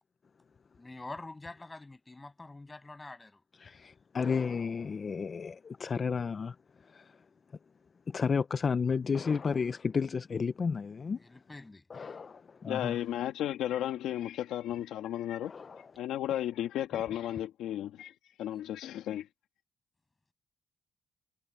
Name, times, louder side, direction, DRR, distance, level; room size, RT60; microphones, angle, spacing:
voice 1, 0.8-3.4 11.2-12.1, left 2 dB, 20° left, 7.9 m, -46 dB
voice 2, 3.6-6.6 6.9-7.2 8.1-11.2 11.9-13.0 15.4-15.9 16.9-17.0, left 5 dB, 40° left, 0.7 m, -32 dB
voice 3, 12.7-15.5 16.0-18.1 18.4-19.3, left 12 dB, 85° left, 1.6 m, -34 dB
cardioid pair, 90°, 0 cm